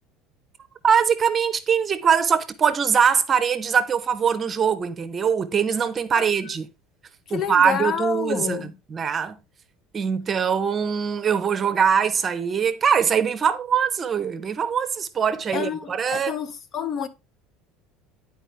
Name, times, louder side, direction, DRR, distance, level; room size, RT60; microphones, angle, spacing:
voice 1, 0.8-6.7 7.3-9.4 9.9-16.4, right 7 dB, 35° right, 0.7 m, -22 dB
voice 2, 7.3-8.7 15.5-17.1, left 7 dB, 45° left, 0.7 m, -28 dB
8.9 x 4.6 x 3.3 m
supercardioid pair, 90°, 0 cm